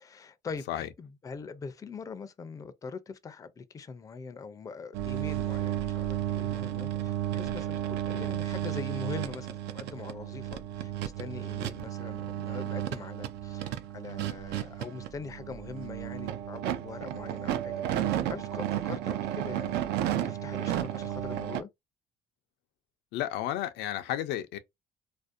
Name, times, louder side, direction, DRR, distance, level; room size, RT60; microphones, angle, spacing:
voice 1, 0.0-17.8 18.3-19.8 20.2-21.7, left 4 dB, 20° left, 0.4 m, -42 dB
sound 1, 4.9-21.6, right 12 dB, 80° right, 0.4 m, -33 dB
voice 2, 23.1-24.6, left 12 dB, 85° left, 0.4 m, -32 dB
2.5 x 2.0 x 2.4 m
cardioid pair, 110°, 17 cm